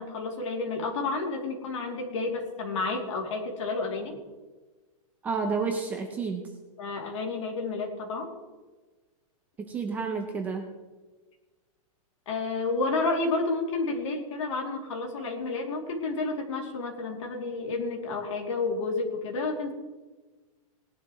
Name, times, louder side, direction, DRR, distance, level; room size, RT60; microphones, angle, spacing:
voice 1, 0.0-4.2 6.8-8.3 12.3-19.7, left 3 dB, 55° left, 1 dB, 2.8 m, -30 dB
voice 2, 5.2-6.5 9.6-10.6, right 4 dB, 10° right, 3 dB, 0.5 m, -30 dB
19.0 x 11.0 x 3.1 m, 1.3 s
supercardioid pair, 180°, 19 cm